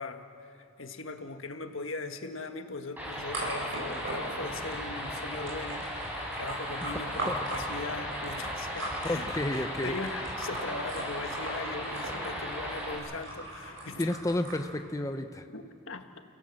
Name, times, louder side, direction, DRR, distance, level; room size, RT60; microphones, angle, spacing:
voice 1, 0.0-14.1 15.5-16.2, left 3 dB, 85° left, 6 dB, 1.5 m, -40 dB
sound 1, 3.0-13.0, equal, 10° right, 4.8 m, -37 dB
sound 2, 3.3-14.6, right 1 dB, 80° right, 7.9 m, -40 dB
voice 2, 9.0-9.9 14.0-15.5, left 1 dB, 15° left, 7 dB, 0.6 m, -31 dB
30.0 x 17.0 x 7.7 m, 2.5 s
head